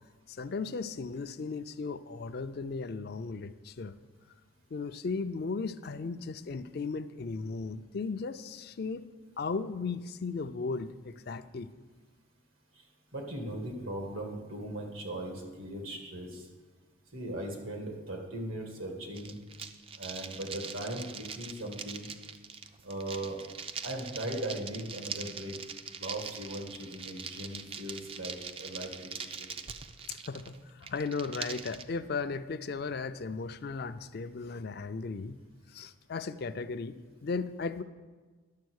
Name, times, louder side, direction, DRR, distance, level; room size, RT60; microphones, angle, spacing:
voice 1, 0.3-3.9 4.7-9.0 9.4-11.7 30.1-35.4 35.7-37.0 37.2-37.8, left 4 dB, 50° left, 11 dB, 0.4 m, -36 dB
voice 2, 13.1-16.5 17.1-19.3 20.0-22.1 22.8-23.4 23.8-25.6 25.9-29.5, right 1 dB, 90° right, 2 dB, 1.9 m, -38 dB
sound 1, 19.1-31.8, right 6 dB, 25° right, 0.3 m, -42 dB
10.5 x 6.9 x 6.3 m, 1.4 s
head